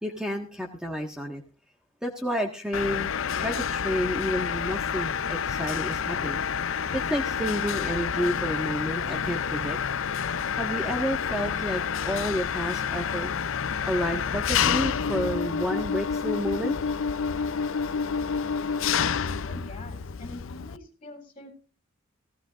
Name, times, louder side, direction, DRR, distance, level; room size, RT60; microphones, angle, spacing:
voice 1, 0.0-1.4 2.0-3.1 3.4-6.4 6.9-9.8 10.5-13.3 13.9-16.8, equal, 5° right, 2 dB, 1.6 m, -30 dB
Mechanisms, 2.7-20.8, left 7 dB, 70° left, 0.6 m, -29 dB
voice 2, 19.4-21.5, left 1 dB, 30° left, 6 dB, 8.0 m, -44 dB
18.0 x 18.0 x 2.5 m, 0.34 s
head